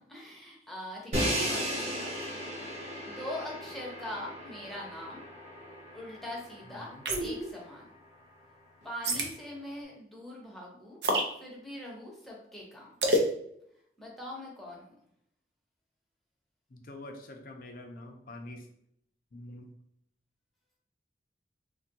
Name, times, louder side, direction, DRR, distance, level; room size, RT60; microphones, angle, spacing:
voice 1, 0.0-2.4 2.8-5.2 5.9-7.9 8.8-11.0 11.4-12.9 14.0-14.9, left 1 dB, ahead, -4 dB, 0.7 m, -42 dB
Crash cymbal, 1.1-7.1, equal, 40° right, 0.8 m, -35 dB
sound 1, 7.1-7.5 9.0-9.3 11.0-11.3 13.0-13.3, right 1 dB, 75° right, 0.6 m, -27 dB
voice 2, 16.7-18.7 19.3-19.7, left 1 dB, 50° left, 4 dB, 0.5 m, -45 dB
3.4 x 2.2 x 2.7 m, 0.71 s
head